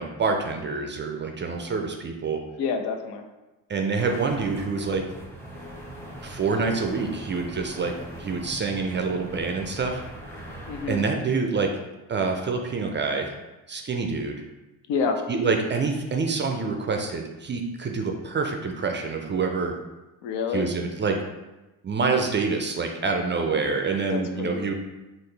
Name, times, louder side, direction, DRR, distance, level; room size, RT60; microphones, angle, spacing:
voice 1, 0.0-2.4 3.7-5.0 6.2-10.0 10.9-11.7 12.1-13.3 13.7-14.4 15.3-19.8 20.5-21.2 21.8-24.7, right 4 dB, 25° right, 3 dB, 0.4 m, -26 dB
voice 2, 2.6-3.3 10.7-11.0 14.9-15.2 20.2-20.7 24.1-24.6, left 5 dB, 70° left, 5 dB, 0.5 m, -28 dB
sound 1, 4.0-11.1, right 1 dB, 5° left, 0.8 m, -40 dB
3.8 x 2.0 x 3.2 m, 1.1 s
hypercardioid pair, 50°, 45 cm